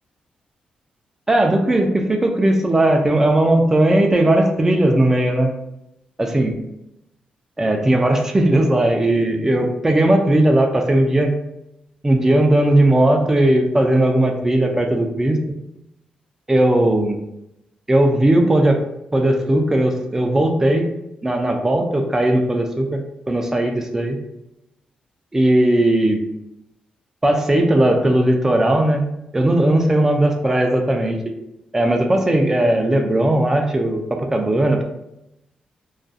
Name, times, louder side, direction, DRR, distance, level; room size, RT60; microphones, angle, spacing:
voice 1, 1.3-5.5 6.2-6.6 7.6-11.3 12.0-15.4 16.5-17.2 17.9-18.8 19.1-20.9 21.2-23.0 23.3-24.2 25.3-26.2 27.2-29.0 29.3-31.2 31.7-34.8, right 1 dB, 15° right, 3 dB, 0.4 m, -17 dB
2.4 x 2.3 x 2.5 m, 0.86 s
cardioid pair, 100°, 3 cm